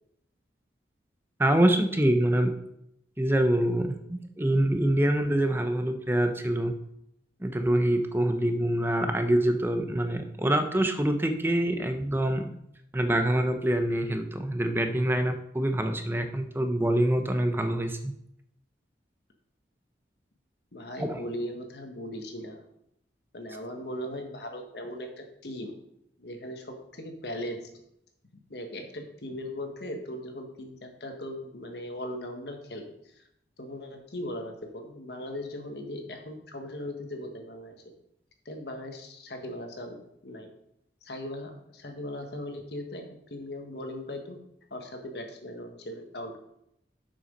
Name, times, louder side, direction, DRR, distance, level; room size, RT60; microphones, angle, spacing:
voice 1, 1.4-2.5 3.2-6.7 7.4-12.5 12.9-18.1 21.0-21.2, right 1 dB, 10° right, 6 dB, 0.7 m, -25 dB
voice 2, 20.7-22.6 23.3-25.8 26.2-27.6 28.5-33.2 33.6-37.8 38.4-40.0 40.2-40.5 41.0-43.0 43.3-44.4 44.7-46.3, left 1 dB, 70° left, 4 dB, 1.4 m, -38 dB
6.9 x 6.0 x 5.2 m, 0.78 s
head